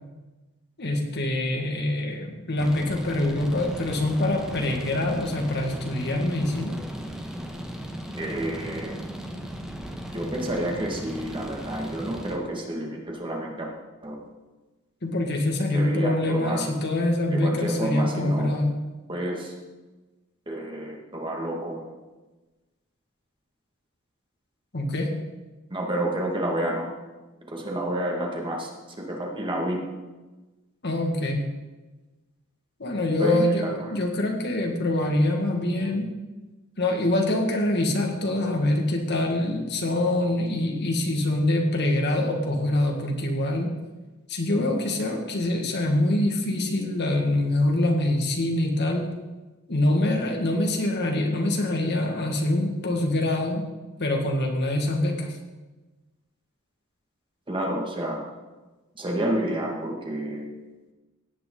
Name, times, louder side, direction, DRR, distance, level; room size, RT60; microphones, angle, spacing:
voice 1, 0.8-6.8 15.0-18.7 24.7-25.1 30.8-31.5 32.8-36.1 36.8-43.7 44.3-49.1 49.7-53.6 54.0-55.4, left 1 dB, 50° left, 2 dB, 1.8 m, -25 dB
sound 1, 2.6-12.4, equal, 5° right, 1.3 m, -36 dB
voice 2, 8.2-8.9 10.1-13.7 14.0-14.2 15.7-16.7 17.3-18.5 19.1-19.5 20.5-21.8 25.7-26.9 27.5-28.7 29.0-29.9 33.2-33.7 57.5-58.2 59.0-60.5, right 1 dB, 25° right, -1 dB, 1.9 m, -29 dB
16.5 x 9.2 x 3.8 m, 1.2 s
head